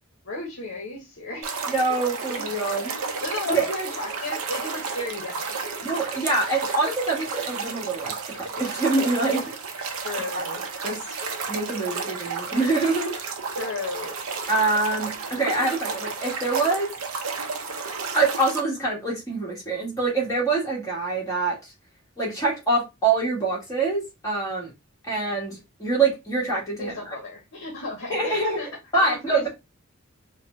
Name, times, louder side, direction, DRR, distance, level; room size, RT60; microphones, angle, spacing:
voice 1, 0.2-1.5 2.3-2.8 3.2-5.5 9.8-10.6 13.6-14.2 26.8-28.7 28.9-29.5, left 2 dB, 65° left, 0.8 m, -34 dB
sound 1, 1.4-18.6, right 5 dB, 85° right, 0.6 m, -32 dB
voice 2, 1.7-2.9 3.5-3.7 5.8-9.5 10.8-11.2 11.5-13.2 14.5-16.9 18.1-21.6 22.2-24.7 25.1-27.1 28.1-28.6 28.9-29.5, right 3 dB, 15° left, 1.4 m, -25 dB
4.2 x 2.1 x 2.5 m
head